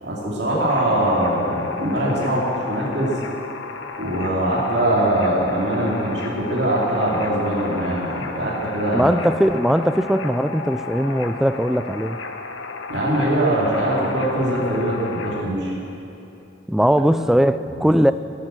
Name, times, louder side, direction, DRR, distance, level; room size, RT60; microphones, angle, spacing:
voice 1, 0.0-3.1 4.0-9.1 12.9-15.7 17.8-17.9, right 1 dB, 60° right, 2.9 m, -22 dB
sound 1, 0.7-15.4, left 4 dB, 85° left, 1.1 m, -33 dB
voice 2, 8.9-12.2 16.7-18.1, equal, ahead, 0.3 m, -19 dB
19.0 x 9.6 x 7.7 m
head